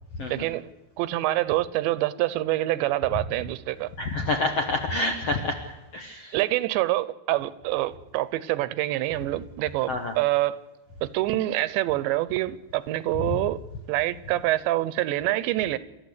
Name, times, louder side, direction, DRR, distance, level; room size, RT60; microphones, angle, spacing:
voice 1, 0.3-0.7 1.0-3.9 6.3-10.6 11.0-13.6 13.9-15.8, right 16 dB, 85° right, 17 dB, 3.1 m, -26 dB
voice 2, 4.0-5.6 5.9-6.3 9.9-10.1 13.3-13.4, left 2 dB, 60° left, 4 dB, 1.6 m, -28 dB
28.5 x 13.5 x 8.3 m, 1.1 s
omnidirectional pair, 5.0 m